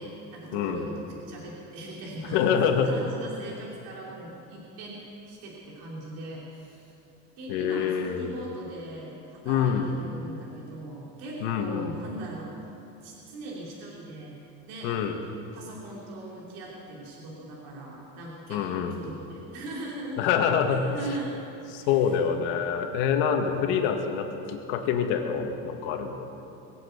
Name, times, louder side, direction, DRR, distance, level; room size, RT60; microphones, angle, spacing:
voice 1, 0.0-5.0 5.3-6.9 7.4-12.6 13.0-14.4 14.7-14.9 15.5-20.2 20.7-21.3 21.8-22.1, right 1 dB, 65° right, -4 dB, 3.0 m, -40 dB
voice 2, 0.5-0.9 2.2-2.9 7.5-8.3 9.5-9.9 11.4-12.0 14.8-15.2 18.5-19.0 20.2-21.2 21.7-26.2, left 7 dB, 85° left, 4 dB, 1.8 m, -26 dB
21.5 x 7.9 x 8.0 m, 2.9 s
cardioid pair, 165°, 34 cm